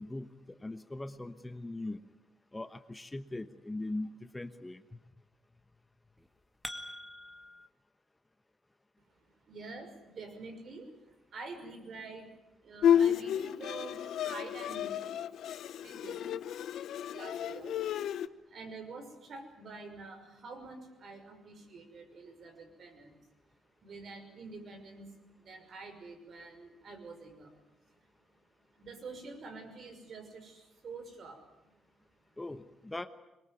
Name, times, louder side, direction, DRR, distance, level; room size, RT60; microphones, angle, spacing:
voice 1, 0.0-2.0 2.5-5.0 32.4-33.1, left 2 dB, 15° left, 10 dB, 1.1 m, -40 dB
sound 1, 6.2-7.7, equal, 5° right, 2.1 m, -44 dB
voice 2, 9.2-12.3 12.6-15.0 15.8-16.6 17.1-17.8 18.2-23.2 23.8-27.6 27.9-28.0 28.7-31.8, right 3 dB, 55° right, 6 dB, 6.0 m, -47 dB
Bowed string instrument, 12.8-18.3, left 9 dB, 75° left, 0.8 m, -31 dB
22.5 x 21.0 x 9.4 m, 0.96 s
cardioid pair, 90°, 0 cm